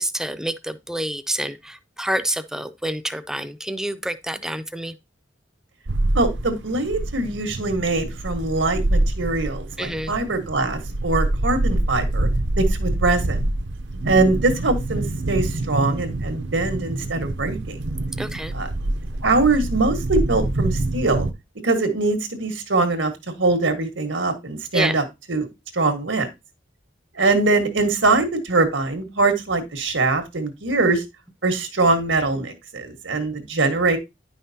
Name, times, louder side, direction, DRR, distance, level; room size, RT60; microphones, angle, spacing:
voice 1, 0.0-4.9 9.8-10.1 18.2-18.5 24.7-25.0, right 1 dB, 5° right, 0.4 m, -28 dB
sound 1, 5.9-21.3, right 1 dB, 70° right, 0.7 m, -26 dB
voice 2, 6.1-12.3 12.6-13.4 14.0-17.8 18.5-18.7 19.2-21.3 21.6-23.1 23.4-25.0 25.3-25.5 25.7-26.3 27.1-31.0 31.4-34.0, right 3 dB, 90° right, 1.5 m, -22 dB
9.9 x 5.6 x 2.8 m
head